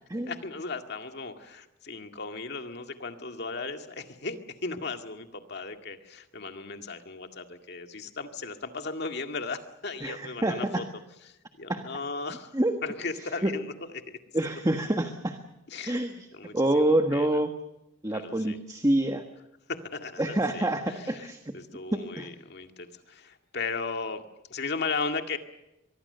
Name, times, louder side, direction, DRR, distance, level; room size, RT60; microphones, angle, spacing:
voice 1, 0.3-10.8 11.3-12.5 12.8-13.7 14.1-14.2 15.7-16.0 16.3-17.3 18.1-18.6 19.7-20.7 21.2-21.3 21.5-24.2 24.5-25.4, left 4 dB, 55° left, 5 dB, 2.1 m, -36 dB
voice 2, 10.0-10.8 11.7-11.8 12.5-12.7 13.4-13.5 14.3-15.4 15.9-16.3 16.5-17.5 18.0-19.2 20.2-21.4 21.9-22.3, right 1 dB, 20° right, 6 dB, 1.4 m, -26 dB
24.5 x 22.5 x 6.8 m, 0.91 s
head